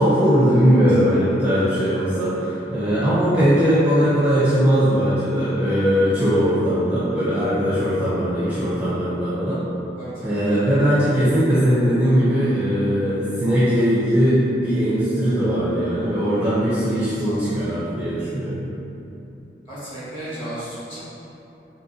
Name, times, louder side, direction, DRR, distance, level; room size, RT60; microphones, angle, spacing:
voice 1, 0.0-9.6 10.2-18.7, equal, 10° right, -12 dB, 0.5 m, -19 dB
voice 2, 10.0-10.4 17.2-17.6 19.7-21.0, right 1 dB, 30° left, -12 dB, 1.2 m, -34 dB
3.9 x 2.7 x 2.7 m, 3.0 s
head